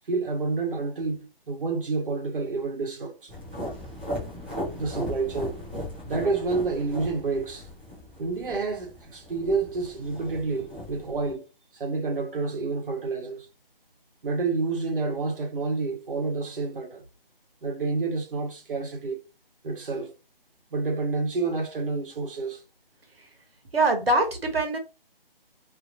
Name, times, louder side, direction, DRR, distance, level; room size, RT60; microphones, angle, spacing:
voice 1, 0.1-3.3 4.8-5.6 6.0-7.7 8.2-11.5 11.7-13.5 14.2-17.0 17.6-19.2 19.6-20.1 20.7-22.6, right 3 dB, 65° right, 1.0 m, -29 dB
sound 1, 3.3-11.3, equal, 10° right, 0.4 m, -37 dB
voice 2, 23.7-24.8, right 2 dB, 80° right, 1.1 m, -23 dB
2.8 x 2.7 x 2.6 m
figure-of-eight pair, 155°, 29 cm